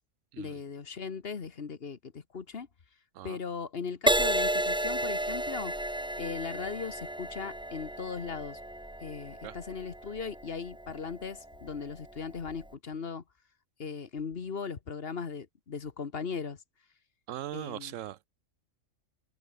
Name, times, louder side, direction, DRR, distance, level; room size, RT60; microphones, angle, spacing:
voice 1, 0.4-2.7 3.2-5.7 6.2-8.6 9.0-13.2 13.8-16.6 17.5-17.9, left 5 dB, 45° left, 1.4 m, -38 dB
Crash cymbal, 4.1-11.7 12.4-12.7, right 1 dB, 5° right, 0.5 m, -32 dB
voice 2, 17.3-18.3, right 12 dB, 75° right, 0.9 m, -40 dB
open air
omnidirectional pair, 1.4 m